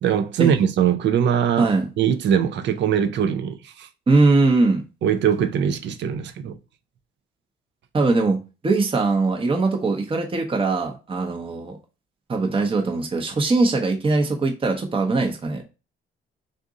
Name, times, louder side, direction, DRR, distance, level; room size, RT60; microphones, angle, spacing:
voice 1, 0.0-1.7 2.0-3.9 5.0-6.5, right 8 dB, 65° right, 0.5 m, -21 dB
voice 2, 4.1-4.8 7.9-8.4 8.6-11.8 12.3-15.6, right 3 dB, 25° right, 0.8 m, -21 dB
3.7 x 2.6 x 3.7 m
cardioid pair, 90°, 20 cm